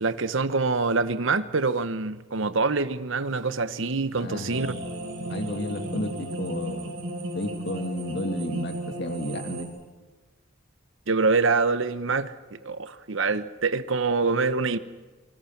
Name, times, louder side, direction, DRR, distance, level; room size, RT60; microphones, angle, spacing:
voice 1, 0.0-4.7 11.1-12.3 12.6-14.8, right 4 dB, 65° right, 1.0 m, -25 dB
voice 2, 4.2-4.7 5.3-6.9 7.3-9.7, left 1 dB, 55° left, 2.4 m, -32 dB
sound 1, 4.5-9.7, right 2 dB, 85° right, 5.4 m, -34 dB
28.0 x 25.0 x 6.0 m
head